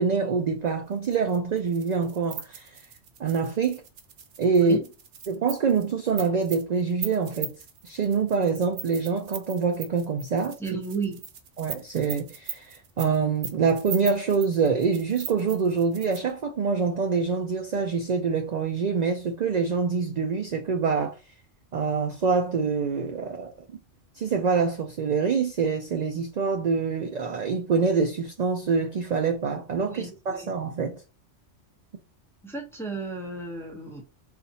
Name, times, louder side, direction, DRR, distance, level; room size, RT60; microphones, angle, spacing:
voice 1, 0.0-2.8 3.2-3.8 4.4-4.8 5.3-7.5 7.8-10.6 11.6-21.2 21.7-23.5 24.2-31.0, right 5 dB, 60° right, 0.4 m, -25 dB
sound 1, 0.9-16.3, right 7 dB, 85° right, 1.0 m, -39 dB
voice 2, 10.6-11.2 29.9-30.5 32.4-34.0, right 4 dB, 5° left, 0.6 m, -33 dB
4.1 x 2.5 x 2.7 m
omnidirectional pair, 1.2 m